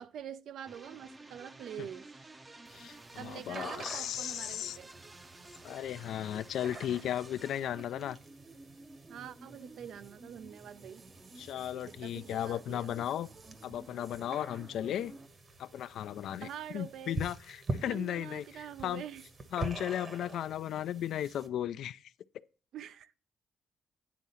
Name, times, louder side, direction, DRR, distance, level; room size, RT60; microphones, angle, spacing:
voice 1, 0.0-2.2 3.2-4.9 9.1-11.0 11.9-12.9 16.4-17.2 17.9-19.2 22.7-23.1, right 9 dB, 70° right, 0.4 m, -45 dB
sound 1, 0.7-15.3, right 2 dB, 25° right, 0.6 m, -53 dB
sound 2, 2.6-21.5, right 3 dB, 40° right, 1.1 m, -46 dB
voice 2, 2.7-4.8 5.6-8.2 11.4-13.3 13.6-15.1 15.6-16.5 16.7-19.0 19.5-22.0, left 11 dB, 75° left, 0.3 m, -35 dB
9.5 x 3.7 x 5.6 m
cardioid pair, 90°, 0 cm